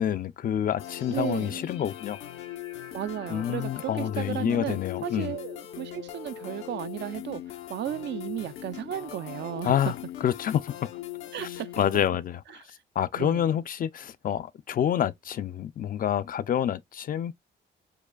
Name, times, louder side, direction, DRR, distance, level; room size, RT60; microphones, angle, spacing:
voice 1, 0.0-2.2 3.3-5.3 9.6-9.9 10.2-10.7 11.4-12.6 13.0-17.3, left 10 dB, 45° left, 0.4 m, -28 dB
sound 1, 0.8-12.1, left 12 dB, 85° left, 0.7 m, -40 dB
voice 2, 1.1-1.6 2.9-9.9 11.3-11.7 12.5-12.6 13.2-13.6, right 12 dB, 60° right, 0.4 m, -34 dB
4.7 x 2.4 x 2.2 m
cardioid pair, 90°, 20 cm